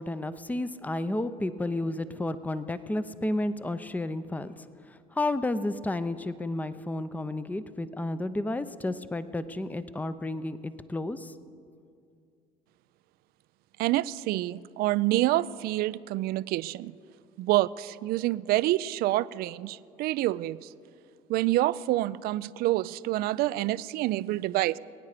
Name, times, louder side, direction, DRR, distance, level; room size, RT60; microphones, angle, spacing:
voice 1, 0.0-4.5 4.9-11.3, left 2 dB, 10° left, 13 dB, 0.7 m, -32 dB
voice 2, 13.8-16.9 17.4-20.7 21.3-24.8, right 16 dB, 60° right, 18 dB, 0.4 m, -27 dB
22.5 x 9.5 x 5.0 m, 2.4 s
hypercardioid pair, 70°, 18 cm